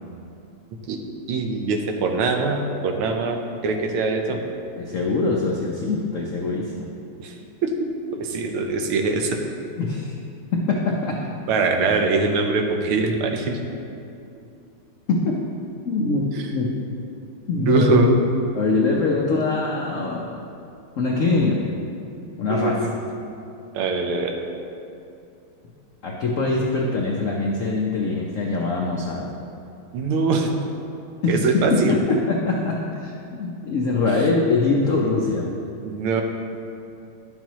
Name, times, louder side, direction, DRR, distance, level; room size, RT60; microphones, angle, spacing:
voice 1, 1.3-4.4 7.2-7.4 7.6-9.4 11.5-13.6 16.3-16.6 17.6-18.1 22.5-22.9 23.7-24.3 29.9-30.5 31.3-32.0 35.8-36.2, right 3 dB, 85° right, 3 dB, 1.7 m, -23 dB
voice 2, 4.8-6.9 9.8-10.1 10.5-11.2 15.1-15.4 15.8-16.7 17.5-18.1 18.5-20.4 21.0-21.6 22.4-22.8 26.0-29.3 31.2-35.5, left 3 dB, 85° left, -2 dB, 0.7 m, -23 dB
11.5 x 7.5 x 3.0 m, 2.6 s
omnidirectional pair, 2.3 m